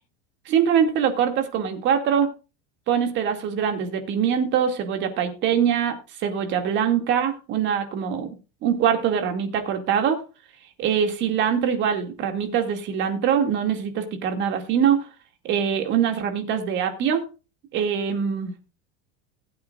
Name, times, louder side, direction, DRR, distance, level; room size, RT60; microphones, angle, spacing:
voice 1, 0.5-2.3 2.9-10.2 10.8-15.1 15.4-17.2 17.7-18.7, right 8 dB, 35° right, 6 dB, 2.3 m, -23 dB
20.0 x 8.5 x 2.5 m, 0.32 s
supercardioid pair, 165°, 32 cm